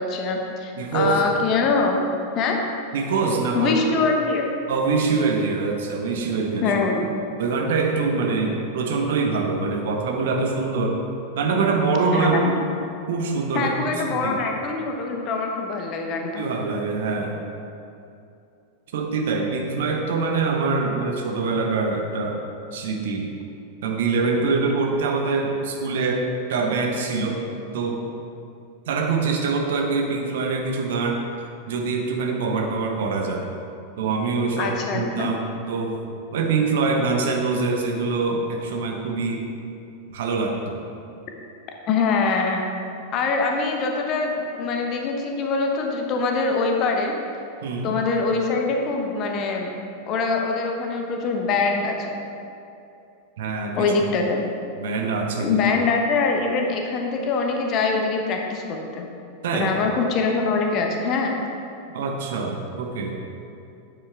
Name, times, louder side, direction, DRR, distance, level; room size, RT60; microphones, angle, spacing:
voice 1, 0.0-2.0 2.3-2.6 3.5-4.5 6.6-7.0 12.1-12.5 13.5-16.4 34.6-35.3 41.9-42.7 43.1-47.1 47.8-49.7 50.1-52.2 53.8-54.4 55.4-59.0 59.5-61.4, left 4 dB, 35° left, 2 dB, 1.1 m, -23 dB
voice 2, 0.8-1.2 2.9-3.7 4.7-6.7 7.4-11.0 11.3-12.4 13.1-14.4 16.4-17.4 18.9-22.4 22.7-23.3 23.8-27.4 27.7-28.0 28.9-31.2 31.7-33.5 34.0-36.0 36.3-39.5 40.1-40.8 47.6-48.0 53.4-53.9 54.8-55.6 59.4-59.7 61.9-63.2, right 4 dB, 55° right, 2 dB, 1.1 m, -24 dB
9.6 x 7.8 x 3.6 m, 2.7 s
figure-of-eight pair, 90°, 0 cm